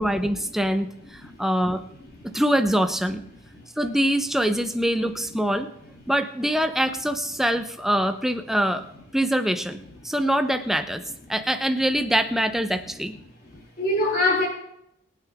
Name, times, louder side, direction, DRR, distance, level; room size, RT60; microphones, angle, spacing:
voice 1, 0.0-1.8 2.2-3.2 3.8-5.7 6.1-8.8 9.1-11.0 11.3-13.1, equal, ahead, 7 dB, 0.8 m, -24 dB
voice 2, 13.4-14.5, left 2 dB, 40° left, -6 dB, 4.0 m, -24 dB
23.0 x 9.0 x 3.6 m, 0.77 s
head